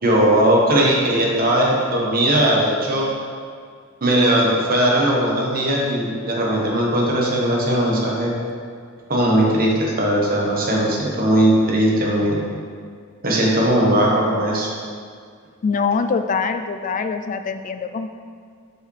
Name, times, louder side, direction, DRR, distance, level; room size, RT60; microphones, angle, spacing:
voice 1, 0.0-3.1 4.0-8.3 9.1-12.4 13.2-14.7, right 1 dB, 45° right, -3 dB, 1.2 m, -18 dB
voice 2, 15.6-18.1, left 5 dB, 35° left, 8 dB, 0.3 m, -23 dB
7.0 x 4.8 x 3.3 m, 2.1 s
head